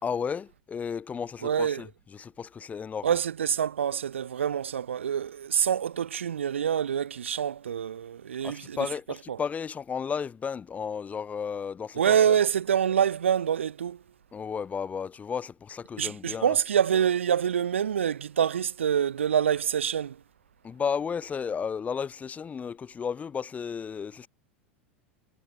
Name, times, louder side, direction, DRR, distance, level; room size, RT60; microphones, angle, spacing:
voice 1, 0.0-3.1 8.4-12.4 14.3-16.5 20.6-24.3, left 6 dB, 20° left, 1.4 m, -33 dB
voice 2, 1.4-1.8 3.0-8.8 9.3-9.4 11.9-14.0 16.0-20.2, right 8 dB, 75° right, 0.8 m, -26 dB
figure-of-eight pair, 85°, 7 cm